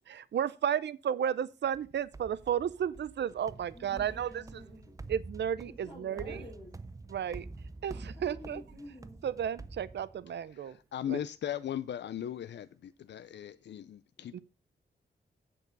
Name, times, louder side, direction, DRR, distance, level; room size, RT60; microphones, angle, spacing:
voice 1, 0.1-4.7 5.1-6.5 7.1-7.5 7.8-8.6 9.2-10.8 11.1-11.2 14.3-14.4, right 9 dB, 80° right, 0.5 m, -33 dB
sound 1, 1.7-10.5, right 3 dB, 20° right, 0.5 m, -48 dB
voice 2, 3.7-5.0 5.6-6.8 8.1-9.2, left 1 dB, 30° left, 2.7 m, -49 dB
voice 3, 10.6-14.4, left 10 dB, 85° left, 0.4 m, -38 dB
8.3 x 6.7 x 5.2 m
wide cardioid pair, 170°, 18 cm